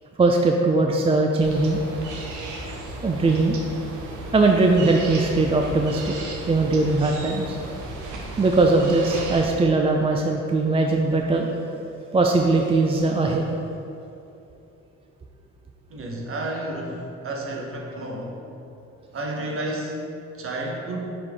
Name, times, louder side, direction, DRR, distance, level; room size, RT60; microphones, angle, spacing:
voice 1, 0.2-1.8 3.0-3.6 4.3-6.1 6.5-7.6 8.4-11.5 12.1-13.4, right 3 dB, 20° right, 2 dB, 0.4 m, -20 dB
sound 1, 1.4-9.5, right 2 dB, 75° right, 0.9 m, -35 dB
voice 2, 15.9-18.4 19.1-21.1, right 1 dB, 45° right, 0 dB, 1.1 m, -31 dB
5.8 x 5.0 x 3.6 m, 2.7 s
cardioid pair, 90°, 30 cm